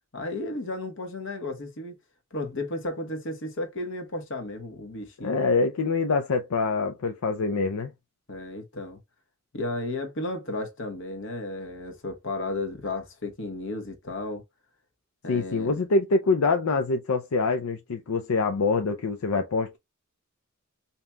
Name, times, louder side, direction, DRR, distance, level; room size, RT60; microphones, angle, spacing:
voice 1, 0.1-2.0 2.3-5.4 8.3-9.0 9.5-14.4 15.2-15.7, left 2 dB, 60° left, 1.3 m, -33 dB
voice 2, 5.2-7.9 15.3-19.8, left 3 dB, 80° left, 0.5 m, -25 dB
5.2 x 2.9 x 2.3 m
head